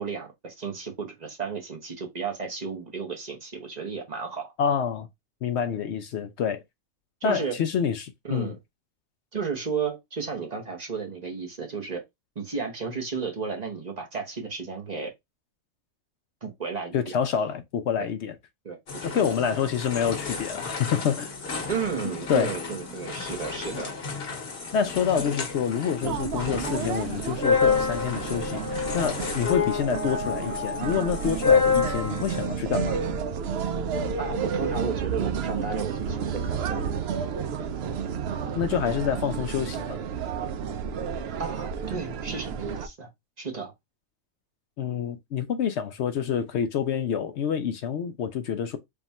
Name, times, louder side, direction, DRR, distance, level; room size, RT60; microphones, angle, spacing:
voice 1, 0.0-4.5 7.2-7.6 8.2-8.6 9.3-12.0 12.3-15.1 16.4-17.1 18.6-19.3 21.7-23.9 34.2-36.9 41.4-43.1 43.4-43.7, right 5 dB, 35° right, 1.0 m, -33 dB
voice 2, 4.6-5.1 5.4-6.6 7.2-8.5 16.9-18.4 19.0-21.3 22.3-22.5 24.7-33.0 38.6-40.0 44.8-48.8, left 7 dB, 65° left, 0.7 m, -27 dB
sound 1, 18.9-32.5, left 5 dB, 50° left, 1.2 m, -29 dB
sound 2, 26.0-42.9, right 6 dB, 65° right, 0.6 m, -31 dB
3.5 x 2.4 x 4.1 m
omnidirectional pair, 1.4 m